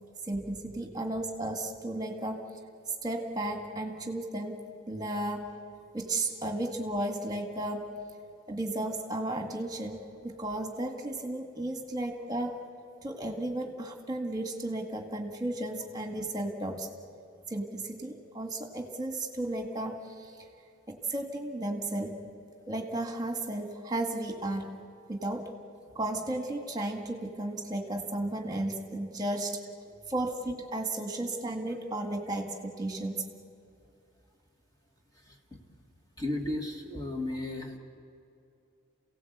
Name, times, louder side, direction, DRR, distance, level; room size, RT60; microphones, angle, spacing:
voice 1, 0.2-2.4 2.9-4.6 4.9-5.5 5.9-7.8 8.5-12.6 13.0-16.9 17.5-20.4 20.9-22.2 22.7-24.7 25.1-25.5 26.0-29.6 30.1-33.3, right 1 dB, 20° right, 4 dB, 1.9 m, -34 dB
voice 2, 35.1-35.6 36.2-37.8, left 1 dB, 20° left, 2 dB, 1.9 m, -35 dB
28.0 x 17.5 x 8.1 m, 2.6 s
head